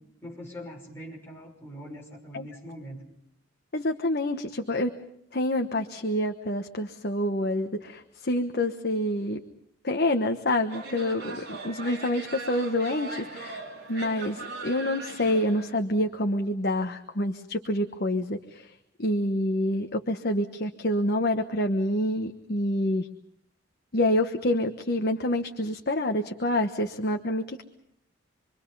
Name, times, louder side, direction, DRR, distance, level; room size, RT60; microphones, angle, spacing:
voice 1, 0.2-3.1, equal, 10° left, -2 dB, 5.9 m, -42 dB
voice 2, 3.7-4.9 5.3-9.4 9.8-18.7 19.0-23.1 23.9-27.6, left 1 dB, 50° left, 4 dB, 1.2 m, -27 dB
sound 1, 10.7-15.7, right 3 dB, 55° right, 3.6 m, -39 dB
27.5 x 23.5 x 5.5 m, 0.75 s
head